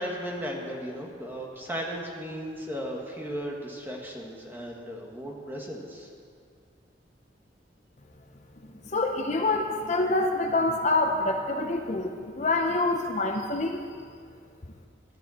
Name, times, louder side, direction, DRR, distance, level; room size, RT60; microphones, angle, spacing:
voice 1, 0.0-6.1, equal, 10° right, -1 dB, 1.7 m, -36 dB
voice 2, 8.9-13.8, left 2 dB, 40° left, 3 dB, 0.7 m, -26 dB
19.5 x 11.5 x 4.3 m, 2.1 s
head